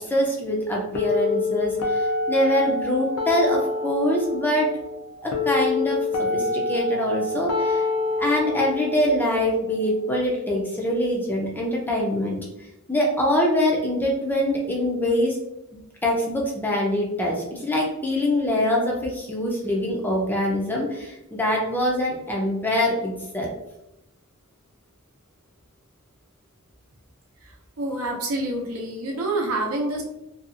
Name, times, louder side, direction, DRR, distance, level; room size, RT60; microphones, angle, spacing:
voice 1, 0.1-4.7 5.2-7.8 8.2-12.4 12.9-15.4 16.0-23.5, left 1 dB, 10° left, -2 dB, 0.4 m, -24 dB
sound 1, 0.9-10.9, left 3 dB, 75° left, 0.4 m, -27 dB
voice 2, 27.8-30.0, right 2 dB, 80° right, 0 dB, 0.6 m, -27 dB
2.7 x 2.3 x 2.4 m, 0.90 s
head